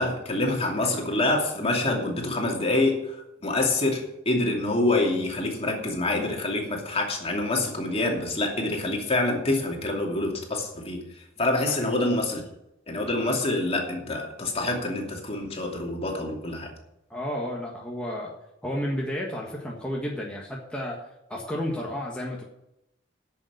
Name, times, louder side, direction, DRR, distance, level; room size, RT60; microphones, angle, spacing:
voice 1, 0.0-3.2 3.4-12.4 12.9-16.7, left 2 dB, 30° left, 1 dB, 2.6 m, -26 dB
voice 2, 17.1-18.3 18.6-21.0 21.3-22.4, equal, 5° left, -3 dB, 1.5 m, -32 dB
10.5 x 6.9 x 8.1 m, 0.88 s
head